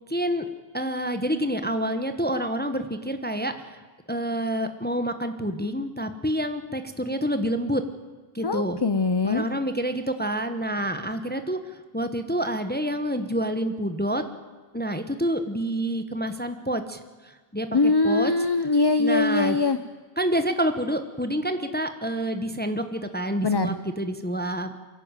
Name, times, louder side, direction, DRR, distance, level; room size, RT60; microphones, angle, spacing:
voice 1, 0.1-0.4 0.7-3.8 4.1-7.8 8.3-8.8 9.2-14.2 14.7-18.3 19.0-19.6 20.2-24.7, right 1 dB, 10° left, 8 dB, 1.2 m, -28 dB
voice 2, 8.4-9.4 17.7-19.8 23.4-23.8, left 3 dB, 30° left, 11 dB, 0.7 m, -22 dB
24.0 x 16.5 x 9.0 m, 1.4 s
omnidirectional pair, 1.0 m